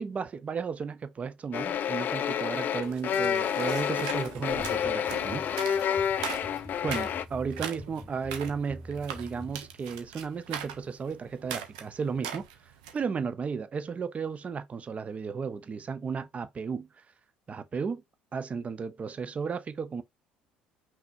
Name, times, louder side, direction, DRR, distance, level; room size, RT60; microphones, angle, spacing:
voice 1, 0.0-5.5 6.8-12.5 12.9-16.9 17.5-18.0 18.3-20.0, right 5 dB, 30° right, 0.7 m, -34 dB
sound 1, 1.5-7.3, left 8 dB, 45° left, 0.5 m, -29 dB
sound 2, 2.8-13.0, right 8 dB, 70° right, 1.0 m, -41 dB
sound 3, 4.3-10.0, equal, 10° left, 1.3 m, -46 dB
5.7 x 3.4 x 2.6 m
figure-of-eight pair, 60°, 4 cm